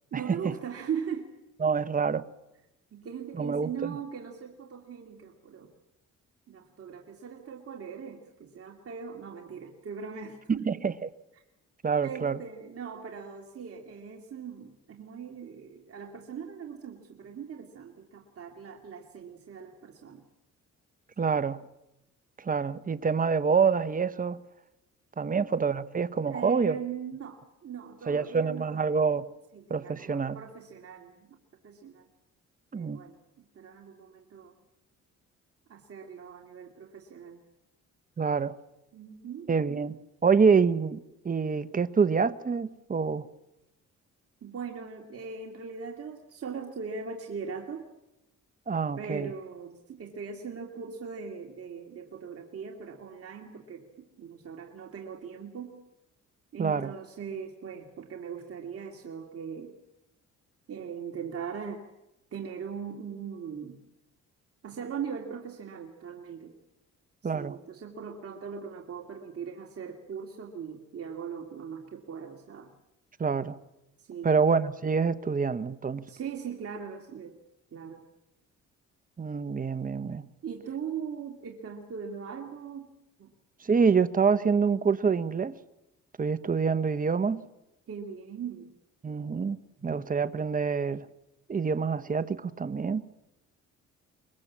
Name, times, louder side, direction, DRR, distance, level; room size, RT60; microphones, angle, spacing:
voice 1, 0.1-1.3 2.9-5.7 6.5-10.7 11.3-11.4 12.0-20.2 21.2-21.4 25.2-25.5 26.3-28.8 29.5-31.4 31.6-32.1 32.7-33.2 33.5-34.5 35.7-37.4 38.9-39.5 44.4-47.9 49.0-55.8 56.5-59.7 60.7-61.8 62.3-63.8 64.6-66.6 67.2-72.7 74.0-74.4 76.1-77.4 77.7-78.0 80.4-82.9 83.2-83.3 87.9-88.7 89.8-90.0, right 6 dB, 50° right, 2.5 m, -40 dB
voice 2, 1.6-2.3 3.4-3.9 10.7-11.1 11.8-12.4 21.2-21.6 22.4-24.4 25.2-26.7 28.1-29.2 29.7-30.4 32.7-33.0 38.2-38.6 39.5-43.3 48.7-49.3 56.6-56.9 67.2-67.6 73.2-73.6 74.2-76.1 79.2-80.2 83.6-85.5 86.2-87.4 89.0-89.6 89.8-91.1 91.5-93.1, right 5 dB, 30° right, 1.1 m, -26 dB
24.0 x 21.5 x 7.5 m
cardioid pair, 90°, 30 cm